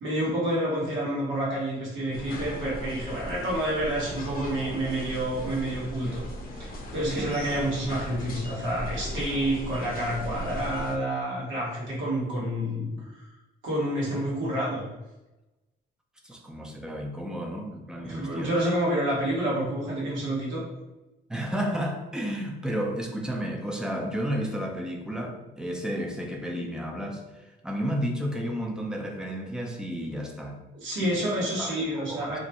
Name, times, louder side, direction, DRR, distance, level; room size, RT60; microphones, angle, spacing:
voice 1, 0.0-6.2 6.6-12.9 13.6-14.8 18.0-20.6 30.7-32.4, right 1 dB, 75° right, -6 dB, 1.1 m, -28 dB
sound 1, 2.1-11.0, equal, 45° left, 0.6 m, -38 dB
voice 2, 16.2-18.5 21.3-30.6 31.0-31.3 31.6-32.4, equal, 5° right, 1 dB, 0.4 m, -32 dB
2.5 x 2.1 x 2.8 m, 1.0 s
cardioid pair, 90°, 20 cm